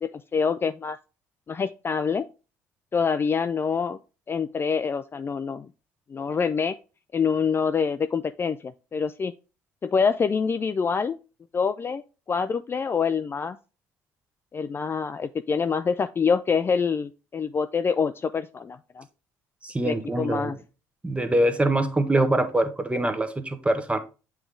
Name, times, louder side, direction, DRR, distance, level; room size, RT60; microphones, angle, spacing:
voice 1, 0.0-1.0 1.5-2.3 2.9-4.0 4.3-5.7 6.1-6.8 7.1-9.3 9.8-11.2 11.5-12.0 12.3-13.6 14.5-19.1 19.8-20.6, left 6 dB, 30° left, 0.3 m, -26 dB
voice 2, 19.6-20.5 21.0-24.0, right 1 dB, 15° right, 1.0 m, -24 dB
7.8 x 3.3 x 3.7 m
hypercardioid pair, 60°, 8 cm